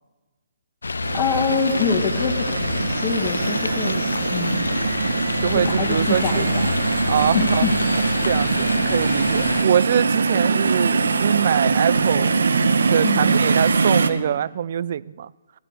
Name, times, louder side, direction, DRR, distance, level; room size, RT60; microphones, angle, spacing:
sound 1, 0.8-9.7, left 4 dB, 90° left, 0.5 m, -27 dB
sound 2, 1.0-14.1, right 4 dB, 80° right, 1.1 m, -22 dB
voice 1, 1.1-4.1 4.3-4.7 5.5-6.7 7.3-7.7 13.0-13.4, left 5 dB, 25° left, 2.0 m, -25 dB
voice 2, 5.4-6.5 7.1-7.7 8.2-12.3 12.9-15.3, right 9 dB, 50° right, 0.4 m, -23 dB
15.0 x 12.0 x 6.8 m
hypercardioid pair, 150°, 0 cm